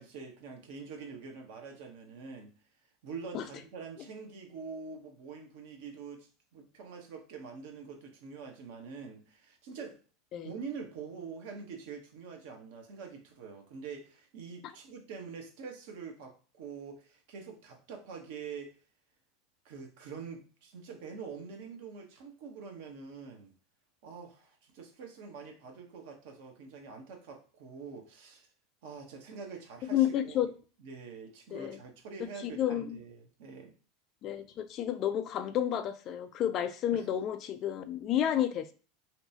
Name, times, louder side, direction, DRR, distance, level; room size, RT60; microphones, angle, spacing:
voice 1, 0.0-2.5 3.0-10.0 10.4-18.7 19.6-23.5 24.0-28.5 28.8-30.5 30.8-33.7 36.9-37.1, right 5 dB, 65° right, 0.8 m, -45 dB
voice 2, 29.9-30.5 31.5-31.8 32.4-33.0 34.2-38.7, left 10 dB, 45° left, 0.3 m, -31 dB
2.8 x 2.2 x 2.7 m
hypercardioid pair, 80°, 0 cm